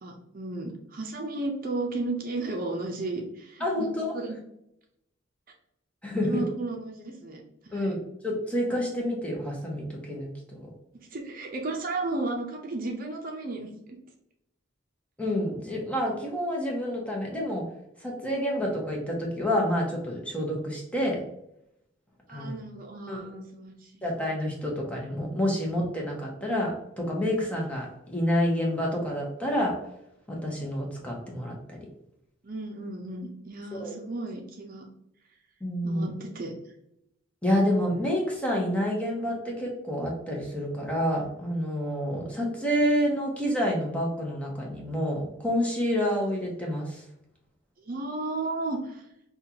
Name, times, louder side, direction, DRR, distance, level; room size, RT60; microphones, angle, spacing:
voice 1, 0.0-3.9 4.1-4.4 6.2-7.9 11.1-14.0 22.3-24.0 32.4-34.8 35.8-36.5 47.8-49.0, right 2 dB, 45° right, 1 dB, 0.6 m, -34 dB
voice 2, 3.6-4.1 6.0-6.4 7.7-10.7 15.2-17.6 18.0-21.2 22.3-22.6 23.1-23.3 24.0-29.8 30.3-31.8 33.7-33.9 35.6-36.1 37.4-47.0, equal, 5° left, -2 dB, 0.9 m, -28 dB
5.4 x 2.4 x 2.8 m, 0.79 s
head